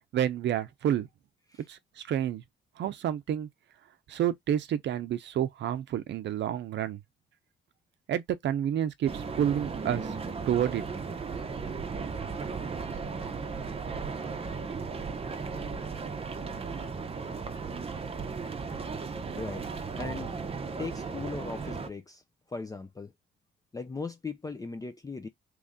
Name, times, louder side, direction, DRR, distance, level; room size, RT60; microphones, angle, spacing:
voice 1, 0.1-1.1 1.7-2.4 2.8-3.5 4.1-7.0 8.1-10.1 10.5-10.8, right 10 dB, 65° right, 0.6 m, -29 dB
sound 1, 9.1-21.9, right 5 dB, 30° right, 0.7 m, -36 dB
voice 2, 19.3-19.6 20.0-20.3 20.8-22.2 22.5-23.1 23.7-25.3, left 4 dB, 20° left, 0.5 m, -38 dB
3.1 x 2.6 x 3.6 m
cardioid pair, 90°, 20 cm